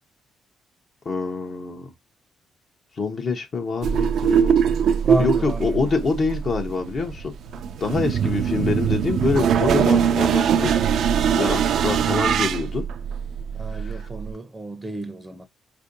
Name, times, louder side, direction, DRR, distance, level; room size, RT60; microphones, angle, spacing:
voice 1, 1.0-1.9 3.0-4.6 5.2-7.3 7.8-10.7 11.4-12.8 13.7-14.0, left 4 dB, 50° left, 0.7 m, -25 dB
sound 1, 3.8-14.3, right 8 dB, 70° right, 0.4 m, -22 dB
voice 2, 5.0-5.9 13.5-15.5, right 1 dB, 15° right, 0.5 m, -30 dB
4.3 x 2.6 x 2.6 m
cardioid pair, 90°, 0 cm